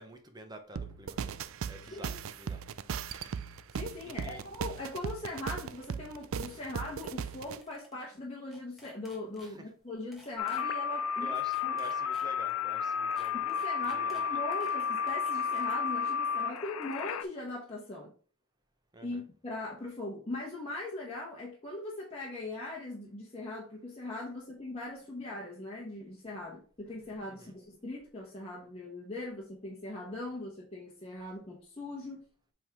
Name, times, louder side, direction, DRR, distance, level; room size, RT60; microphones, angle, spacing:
voice 1, 0.0-1.3 1.7-2.6 4.0-4.4 9.4-9.7 11.2-13.4 13.8-14.4 18.9-19.2 27.3-27.6, right 1 dB, 20° right, 6 dB, 0.7 m, -49 dB
sound 1, 0.8-7.6, right 6 dB, 70° right, 0.4 m, -38 dB
voice 2, 1.8-2.2 3.7-11.3 11.6-11.8 13.3-18.1 19.0-32.2, left 2 dB, 30° left, -4 dB, 1.1 m, -40 dB
sound 2, 7.0-7.1 7.4-8.0 8.3-9.5 10.1-10.6 11.3-12.5 13.1-15.8 16.4-17.3, equal, ahead, 1.3 m, -57 dB
sound 3, 10.4-17.2, left 7 dB, 85° left, 0.4 m, -32 dB
7.7 x 3.7 x 3.5 m, 0.40 s
head